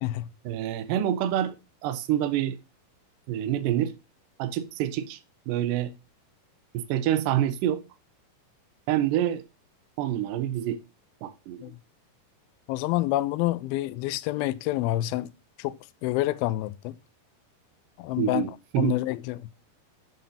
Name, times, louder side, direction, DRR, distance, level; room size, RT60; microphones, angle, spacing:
voice 1, 0.5-1.6 1.8-2.6 3.3-3.9 4.4-5.2 5.5-5.9 6.7-7.8 8.9-9.4 10.0-10.8 11.2-11.7 18.2-18.9, right 11 dB, 75° right, 2.2 m, -27 dB
voice 2, 12.7-15.3 15.6-17.0 18.0-18.5 18.8-19.6, left 16 dB, 85° left, 2.4 m, -28 dB
9.4 x 5.4 x 2.8 m
omnidirectional pair, 4.3 m